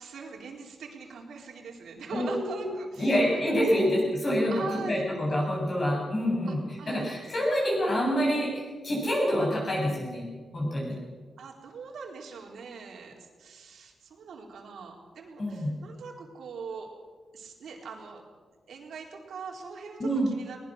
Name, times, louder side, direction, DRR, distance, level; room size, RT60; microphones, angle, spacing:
voice 1, 0.0-3.4 3.7-3.9 4.5-5.1 6.5-7.2 11.4-16.9 17.3-18.2 18.7-20.6, right 5 dB, 80° right, 0 dB, 3.9 m, -42 dB
voice 2, 2.1-2.7 3.0-6.6 6.9-10.3 10.5-11.0 15.4-15.8 20.0-20.3, equal, 35° left, -2 dB, 7.9 m, -27 dB
21.0 x 20.0 x 6.5 m, 1.4 s
wide cardioid pair, 135°, 0 cm